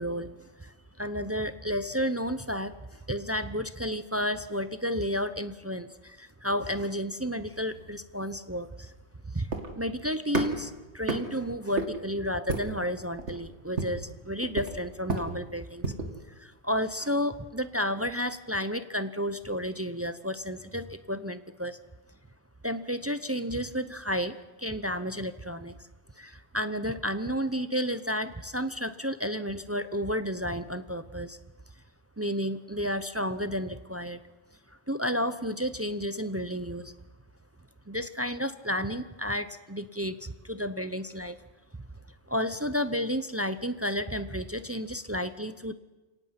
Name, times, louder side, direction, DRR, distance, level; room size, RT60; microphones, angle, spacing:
voice 1, 0.0-8.9 9.3-15.9 16.4-21.8 22.6-25.7 26.2-31.4 32.2-34.2 34.9-36.9 37.9-41.4 42.3-45.7, equal, 20° right, 11 dB, 0.4 m, -32 dB
sound 1, 7.4-16.2, right 3 dB, 60° right, 2.3 m, -35 dB
29.0 x 18.0 x 5.9 m, 1.1 s
omnidirectional pair, 1.3 m